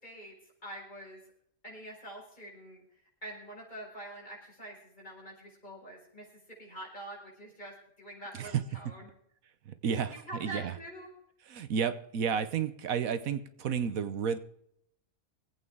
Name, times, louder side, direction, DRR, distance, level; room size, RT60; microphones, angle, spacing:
voice 1, 0.0-0.3 0.6-1.2 1.6-2.8 3.2-6.3 6.6-9.1 9.9-11.1, right 1 dB, 30° left, -3 dB, 5.5 m, -45 dB
voice 2, 9.8-10.7 11.5-14.4, right 7 dB, 70° right, 12 dB, 1.3 m, -31 dB
23.0 x 8.6 x 3.6 m, 0.72 s
omnidirectional pair, 1.5 m